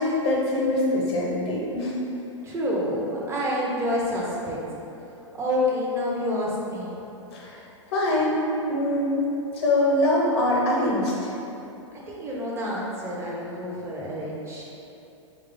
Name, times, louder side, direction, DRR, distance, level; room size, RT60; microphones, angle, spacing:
voice 1, 0.0-1.9 7.3-7.6 7.9-9.3 9.5-11.3, left 1 dB, 55° left, -3 dB, 0.8 m, -23 dB
voice 2, 2.4-4.6 5.3-6.9 12.1-14.6, left 1 dB, 15° right, -5 dB, 0.6 m, -28 dB
3.1 x 2.3 x 3.6 m, 2.9 s
figure-of-eight pair, 105°, 16 cm